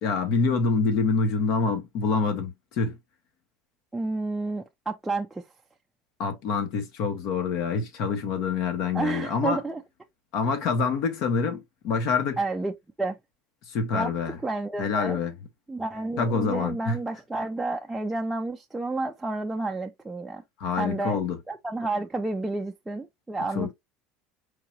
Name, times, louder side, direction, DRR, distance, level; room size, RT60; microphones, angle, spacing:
voice 1, 0.0-3.0 6.2-9.6 10.3-12.4 13.7-14.4 14.8-15.3 16.2-17.0 20.6-21.4 23.5-23.7, left 5 dB, 55° left, 1.5 m, -26 dB
voice 2, 3.9-5.4 8.9-9.8 12.4-12.7 13.0-13.2 13.9-14.1 14.4-15.2 15.7-20.4 20.7-21.2 21.5-23.7, right 2 dB, 5° right, 0.5 m, -30 dB
4.8 x 3.0 x 2.9 m
cardioid pair, 155°, 0 cm